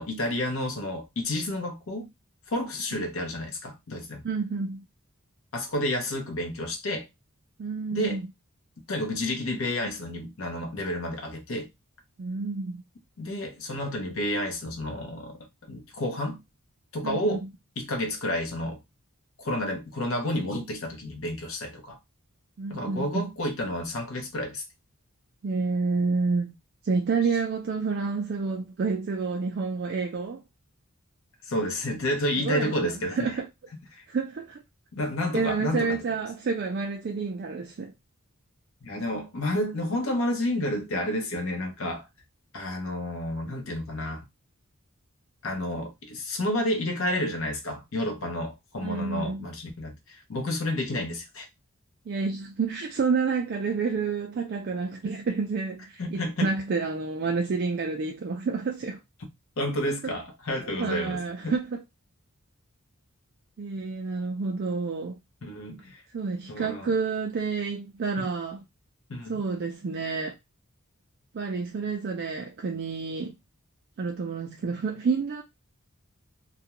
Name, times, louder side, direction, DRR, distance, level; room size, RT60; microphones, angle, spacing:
voice 1, 0.0-2.1 2.5-4.2 5.5-7.1 7.9-8.2 8.9-11.7 13.2-16.4 16.9-17.4 17.8-18.8 19.4-22.0 22.7-24.6 31.4-33.4 34.9-36.0 38.8-42.1 42.5-44.2 45.4-51.5 56.0-56.5 59.6-61.5 65.4-66.0 66.5-66.9 68.2-68.3 69.1-69.3, left 1 dB, 65° left, 0.7 m, -30 dB
voice 2, 4.2-4.9 7.6-8.3 12.2-12.8 17.0-17.5 22.6-23.3 25.4-26.5 26.8-30.4 32.4-33.5 34.1-34.6 35.3-37.9 48.8-49.5 52.1-59.0 60.8-61.8 63.6-65.2 66.1-68.6 69.3-70.4 71.3-73.4 74.0-75.4, right 4 dB, 50° right, 0.3 m, -29 dB
2.3 x 2.1 x 2.9 m
head